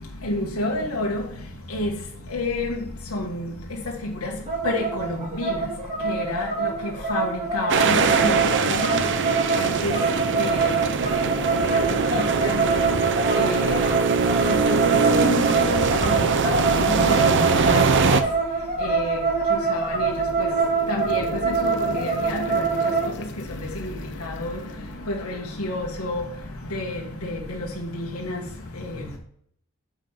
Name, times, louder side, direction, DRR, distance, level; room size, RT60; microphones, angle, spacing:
voice 1, 0.2-1.2 1.7-1.9 2.3-2.7 3.1-3.5 4.2-4.3 4.6-5.6 6.1-6.5 7.1-8.4 8.7-9.0 9.6-9.9 10.4-10.7 11.9-12.0 12.4-12.5 13.4-13.8 14.5-14.8 15.1-16.3 16.8-18.2 18.8-19.1 19.7-20.1 20.9-22.6 23.8-23.9 24.2-24.6 25.1-26.2 26.7-28.4, left 2 dB, 80° left, 1.3 m, -29 dB
sound 1, 4.5-23.1, right 4 dB, 40° right, 3.3 m, -25 dB
sound 2, 7.7-18.2, right 5 dB, 60° right, 0.7 m, -22 dB
sound 3, 19.7-25.6, left 3 dB, 60° left, 0.9 m, -39 dB
7.3 x 5.5 x 4.3 m
head